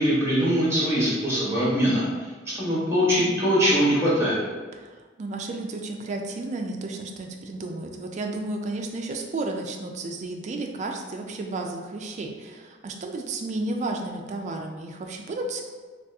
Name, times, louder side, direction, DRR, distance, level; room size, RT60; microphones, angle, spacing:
voice 1, 0.0-2.0 2.5-4.4, equal, 15° right, -8 dB, 1.0 m, -22 dB
voice 2, 4.8-15.6, right 2 dB, 40° right, 3 dB, 0.3 m, -32 dB
2.8 x 2.3 x 3.4 m, 1.4 s
head